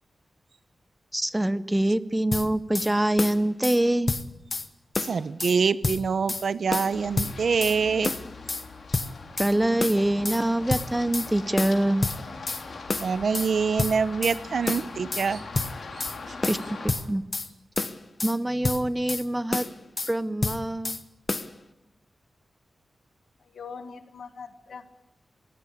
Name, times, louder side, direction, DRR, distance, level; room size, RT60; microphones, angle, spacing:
voice 1, 1.1-4.1 9.4-12.1 16.5-16.6 16.8-17.2 18.2-19.7 20.1-21.0, right 1 dB, 10° right, 15 dB, 0.6 m, -25 dB
sound 1, 2.3-2.9 3.2-3.8 4.1-4.7 5.0-5.6 5.8-6.4 6.7-7.8 8.0-8.6 8.9-9.5 9.8-10.4 10.7-11.3 11.6-12.6 12.9-13.5 13.8-14.4 14.7-15.3 15.5-16.2 16.4-17.5 17.8-18.4 18.6-19.2 19.5-20.1 20.4-21.0 21.3-21.5, left 3 dB, 35° left, 1.0 m, -29 dB
voice 2, 5.0-8.1 13.0-15.4, right 5 dB, 65° right, 15 dB, 0.7 m, -25 dB
Run, 6.9-16.9, left 4 dB, 65° left, 3.7 m, -41 dB
voice 3, 23.4-24.9, left 5 dB, 85° left, 8 dB, 1.8 m, -42 dB
21.0 x 16.5 x 8.5 m, 0.95 s
wide cardioid pair, 150°, 0 cm